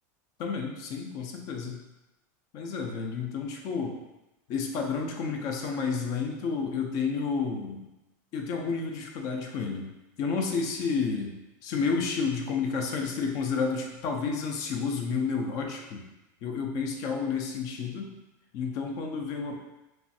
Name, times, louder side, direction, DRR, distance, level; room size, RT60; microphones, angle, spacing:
voice 1, 0.4-1.8 2.5-4.0 4.5-7.8 8.3-9.9 10.2-11.3 11.6-16.0 16.4-18.1 18.5-19.6, left 5 dB, 35° left, 2 dB, 0.4 m, -30 dB
3.1 x 2.5 x 2.6 m, 0.99 s
supercardioid pair, 165°, 10 cm